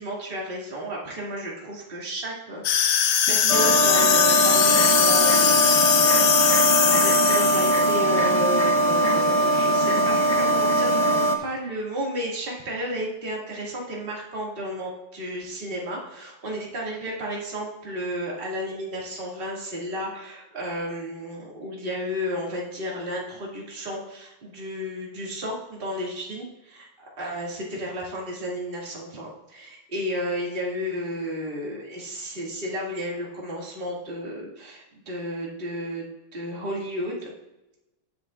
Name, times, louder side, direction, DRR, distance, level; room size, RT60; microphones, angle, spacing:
voice 1, 0.0-3.0 3.3-5.6 5.9-26.9 27.2-36.1 36.3-37.3, equal, 25° right, -3 dB, 2.1 m, -32 dB
sound 1, 2.6-8.0, left 9 dB, 85° left, 1.7 m, -21 dB
sound 2, 3.5-11.4, right 1 dB, 65° left, 0.3 m, -21 dB
19.0 x 6.9 x 2.4 m, 0.97 s
omnidirectional pair, 2.3 m